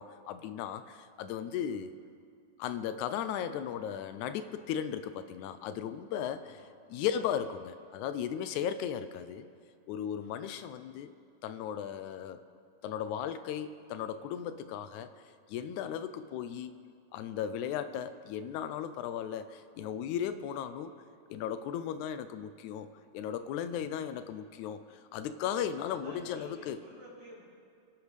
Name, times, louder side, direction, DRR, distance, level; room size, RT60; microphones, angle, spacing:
voice 1, 0.0-1.9 2.6-6.5 6.9-9.5 9.9-11.1 11.4-12.4 12.8-15.1 15.5-16.7 17.1-20.9 21.3-22.9 23.1-26.8, left 9 dB, 80° left, 11 dB, 1.8 m, -36 dB
voice 2, 25.9-27.4, equal, 65° right, -7 dB, 5.3 m, -52 dB
25.5 x 11.5 x 3.3 m, 2.4 s
omnidirectional pair, 3.7 m